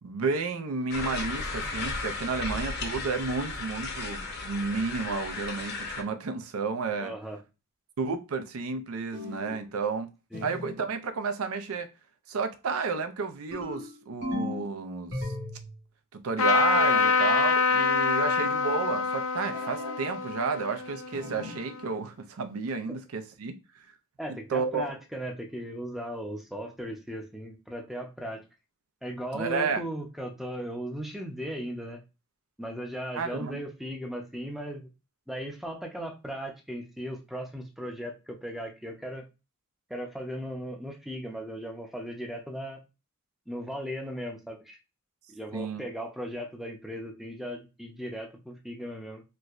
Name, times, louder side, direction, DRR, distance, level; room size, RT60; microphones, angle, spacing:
voice 1, 0.0-7.1 8.0-10.1 10.4-11.9 12.3-15.3 16.1-23.6 24.5-24.9 29.3-29.8 33.2-33.6 45.5-45.8, right 4 dB, 85° right, 0.5 m, -31 dB
sound 1, 0.9-6.0, left 3 dB, 50° left, 0.7 m, -35 dB
voice 2, 7.0-7.4 10.3-10.5 24.2-28.4 29.0-32.0 32.6-34.9 35.3-39.2 39.9-42.8 43.5-44.8 45.3-49.2, equal, ahead, 0.5 m, -37 dB
sound 2, 9.1-9.7 10.3-10.8 13.5-14.7 15.1-15.8 16.7-17.2 19.5-20.0 21.1-21.6, left 2 dB, 55° right, 1.5 m, -37 dB
Trumpet, 16.4-21.9, left 5 dB, 80° left, 0.5 m, -26 dB
4.4 x 2.1 x 2.4 m
head